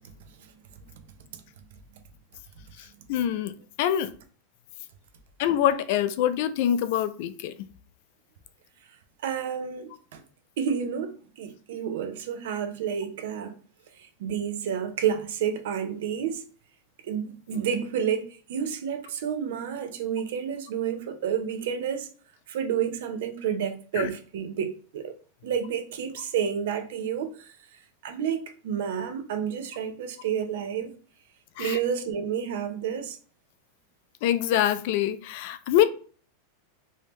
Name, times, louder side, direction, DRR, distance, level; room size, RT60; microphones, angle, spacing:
voice 1, 3.1-3.5 3.8-4.1 5.4-7.5 24.0-24.1 31.6-31.8 34.2-35.8, left 11 dB, 60° left, 0.3 m, -24 dB
voice 2, 9.2-10.2 10.6-13.5 14.0-16.4 17.0-22.1 22.5-25.1 25.4-27.5 28.0-30.9 31.6-33.2, right 8 dB, 75° right, 0.6 m, -30 dB
3.3 x 2.7 x 3.1 m
supercardioid pair, 130°, 0 cm